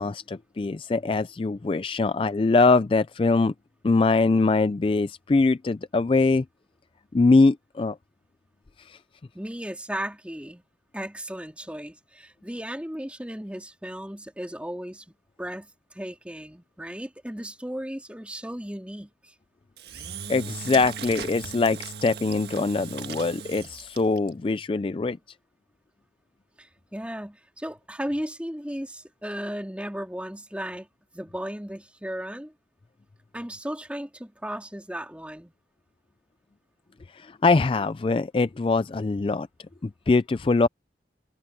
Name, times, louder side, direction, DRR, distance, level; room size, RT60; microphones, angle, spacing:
voice 1, 0.0-3.5 3.8-6.4 7.1-8.0 8.8-9.0 20.3-25.2 37.1-39.5 39.8-40.7, left 3 dB, 30° left, 0.3 m, -23 dB
voice 2, 9.3-10.6 10.9-15.0 15.4-19.3 26.6-30.9 31.1-32.5 33.3-35.5, equal, 5° right, 2.8 m, -35 dB
Engine / Drill, 19.8-24.3, right 5 dB, 65° right, 1.7 m, -38 dB
head